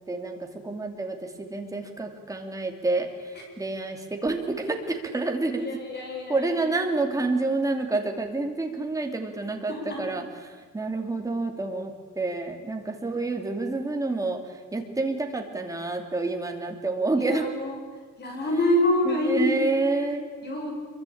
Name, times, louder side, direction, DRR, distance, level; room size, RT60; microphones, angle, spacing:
voice 1, 0.1-3.1 3.6-5.7 6.0-10.2 10.7-14.4 14.7-17.5 19.0-20.3, right 3 dB, 10° right, 3 dB, 2.7 m, -28 dB
voice 2, 5.6-6.8 9.7-10.1 13.0-13.2 17.2-17.8 18.2-19.6 20.4-20.7, left 1 dB, 35° left, 0 dB, 7.1 m, -27 dB
25.5 x 23.5 x 8.7 m, 1.5 s
cardioid pair, 175°, 31 cm